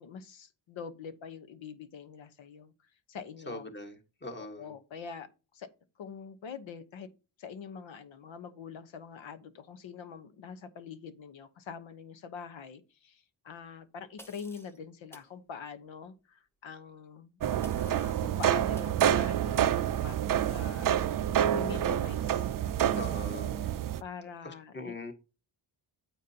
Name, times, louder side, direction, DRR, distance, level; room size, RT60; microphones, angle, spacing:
voice 1, 0.0-2.7 3.1-3.7 4.6-5.3 5.5-5.7 6.0-7.1 7.4-17.4 17.8-21.0 21.4-22.5 23.3-23.6 24.0-25.1, left 6 dB, 80° left, 1.1 m, -45 dB
voice 2, 3.5-4.7 22.9-23.5 24.4-25.1, left 2 dB, 25° left, 1.5 m, -41 dB
sound 1, 14.2-14.8 15.1-15.3 17.6-18.2 18.8-19.0, left 1 dB, 5° left, 0.8 m, -53 dB
sound 2, 17.4-24.0, right 10 dB, 50° right, 0.5 m, -28 dB
9.1 x 8.4 x 2.9 m
wide cardioid pair, 135°, 45 cm